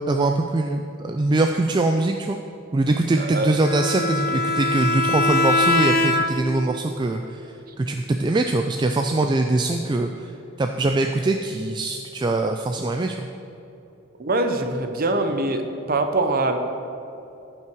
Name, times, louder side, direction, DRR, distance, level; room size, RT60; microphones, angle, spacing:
voice 1, 0.1-2.4 2.7-7.5 7.8-10.3 10.6-13.3, right 2 dB, 20° right, 4 dB, 0.3 m, -22 dB
voice 2, 3.2-3.6 14.2-15.6 15.9-16.6, right 2 dB, 45° right, 6 dB, 0.8 m, -23 dB
Bowed string instrument, 3.6-6.6, left 2 dB, 45° left, 0.7 m, -22 dB
14.5 x 5.8 x 4.6 m, 2.8 s
head